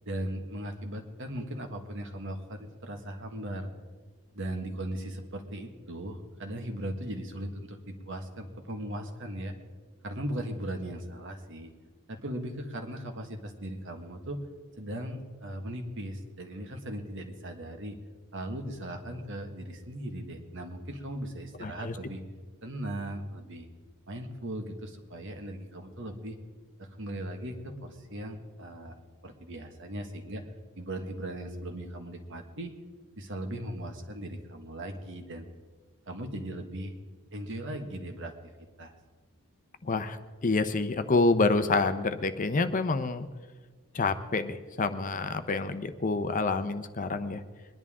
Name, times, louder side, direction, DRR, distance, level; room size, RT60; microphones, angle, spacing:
voice 1, 0.0-3.7 4.3-9.5 10.0-11.7 12.1-14.4 14.8-18.0 18.3-22.2 22.6-23.7 24.1-26.4 26.8-28.9 29.2-30.4 30.7-32.7 33.2-35.4 36.1-36.9 37.3-38.5 38.8-38.9, right 1 dB, 60° right, 4 dB, 1.6 m, -38 dB
voice 2, 21.6-21.9 39.8-43.3 43.9-47.4, left 3 dB, 40° left, 10 dB, 0.7 m, -28 dB
22.0 x 11.0 x 3.7 m, 1.4 s
head